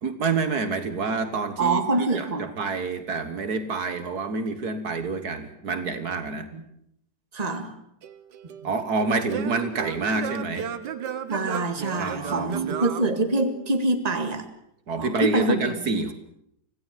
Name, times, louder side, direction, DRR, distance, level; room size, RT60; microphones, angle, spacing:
voice 1, 0.0-6.5 8.6-10.7 12.0-12.6 14.9-16.1, right 3 dB, 65° right, 9 dB, 1.9 m, -27 dB
voice 2, 1.6-2.5 6.5-6.6 7.3-7.7 11.3-14.5 15.0-15.7, right 2 dB, 25° right, 7 dB, 2.0 m, -25 dB
Singing / Plucked string instrument, 8.0-13.9, right 8 dB, 80° right, 1.8 m, -34 dB
25.5 x 17.0 x 7.4 m, 0.74 s
omnidirectional pair, 1.8 m